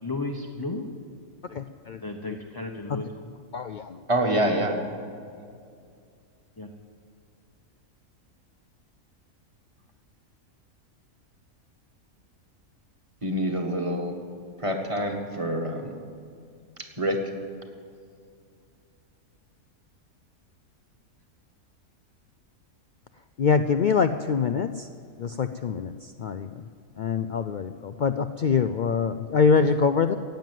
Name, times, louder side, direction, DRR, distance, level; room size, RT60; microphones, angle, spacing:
voice 1, 0.0-0.9 2.0-3.3 6.6-6.7, left 2 dB, 20° left, 2 dB, 0.7 m, -34 dB
voice 2, 1.5-2.4 2.9-3.0 3.5-4.0 23.4-24.9 25.2-26.7 27.0-30.2, left 5 dB, 85° left, 9 dB, 0.4 m, -25 dB
voice 3, 4.1-4.7 13.2-14.1 14.6-16.0 17.0-17.2, right 1 dB, 25° right, 3 dB, 1.6 m, -26 dB
16.0 x 9.2 x 9.3 m, 2.3 s
omnidirectional pair, 1.4 m